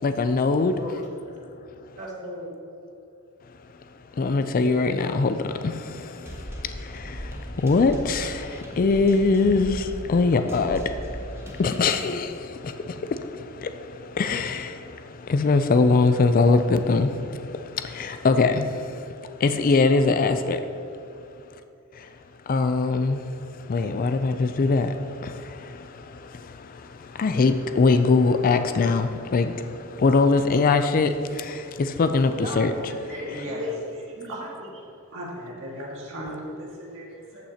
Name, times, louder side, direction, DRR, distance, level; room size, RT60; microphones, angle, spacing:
voice 1, 0.0-0.8 4.1-19.1 19.4-20.6 22.0-22.1 22.5-32.7, left 3 dB, 40° left, 0.4 m, -23 dB
voice 2, 2.0-2.5 32.4-33.8 34.1-34.5, left 1 dB, 35° right, 1.7 m, -35 dB
sound 1, 6.3-11.9, equal, 10° right, 0.9 m, -38 dB
voice 3, 33.3-34.8 35.1-37.4, equal, 60° right, 1.9 m, -37 dB
14.0 x 5.9 x 2.8 m
head